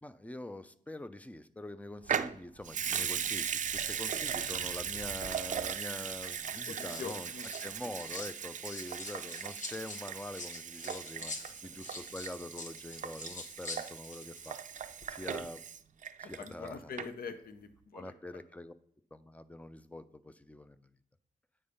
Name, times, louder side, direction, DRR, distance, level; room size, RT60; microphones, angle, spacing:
voice 1, 0.0-7.3 7.6-11.3 11.6-14.6 15.1-15.6 16.2-16.9 17.9-18.7 19.1-20.9, left 1 dB, 10° left, 12 dB, 0.4 m, -45 dB
Water tap faucet / Sink (filling or washing) / Liquid, 2.0-16.7 17.0-17.1, right 8 dB, 55° right, 0.4 m, -38 dB
sound 1, 4.9-5.4 6.2-8.3 8.6-14.5 14.8-15.1, left 2 dB, 55° left, 1.0 m, -46 dB
voice 2, 6.7-7.5 7.8-7.9 11.6-11.7 16.2-18.1, left 5 dB, 75° left, 9 dB, 0.7 m, -44 dB
8.8 x 3.4 x 5.4 m, 0.63 s
cardioid pair, 85°, 15 cm